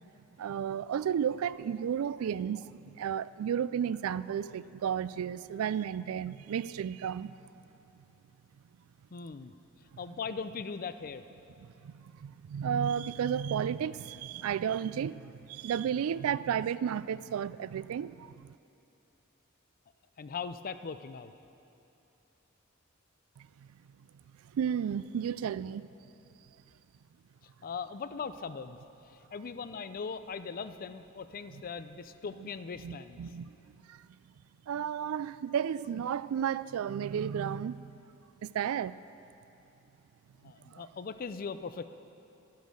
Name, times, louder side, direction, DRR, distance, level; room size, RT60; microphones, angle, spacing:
voice 1, 0.4-7.3 11.6-18.5 23.4-23.5 24.5-25.9 31.5-31.6 32.8-33.6 33.9-34.1 34.7-37.9 38.4-39.0 40.7-40.9, right 8 dB, 85° right, 0.3 m, -33 dB
voice 2, 9.1-9.5 10.0-11.2 20.2-21.3 27.6-28.8 29.3-33.2 40.4-41.8, left 5 dB, 45° left, 0.5 m, -39 dB
12.5 x 10.5 x 6.4 m
head